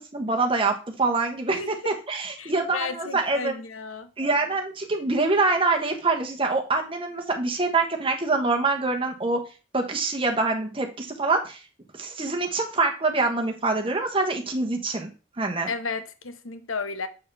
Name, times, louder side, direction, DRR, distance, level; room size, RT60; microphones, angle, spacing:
voice 1, 0.0-3.5 4.2-9.4 9.7-11.6 11.9-15.1 15.4-15.7, right 3 dB, 25° right, 1.2 m, -25 dB
voice 2, 2.4-4.1 15.7-17.1, left 4 dB, 90° left, 0.9 m, -33 dB
6.8 x 6.5 x 3.4 m
head